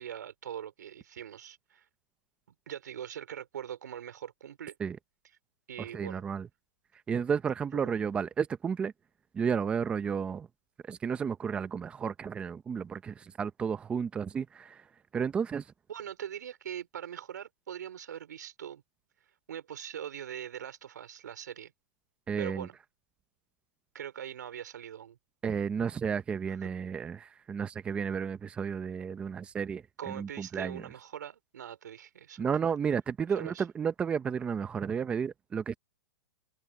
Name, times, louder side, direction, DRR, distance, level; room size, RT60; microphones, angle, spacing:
voice 1, 0.0-1.9 2.7-4.8 5.7-6.2 7.8-7.9 15.9-18.8 19.5-21.7 22.4-22.8 23.9-25.2 26.5-26.7 30.0-32.5 33.3-33.7, right 9 dB, 75° right, 4.5 m, -42 dB
voice 2, 5.9-6.5 7.1-8.9 9.3-10.5 10.9-14.8 15.1-15.6 22.3-22.7 25.4-30.8 32.4-35.8, right 6 dB, 10° right, 0.7 m, -32 dB
hypercardioid pair, 155°, 10 cm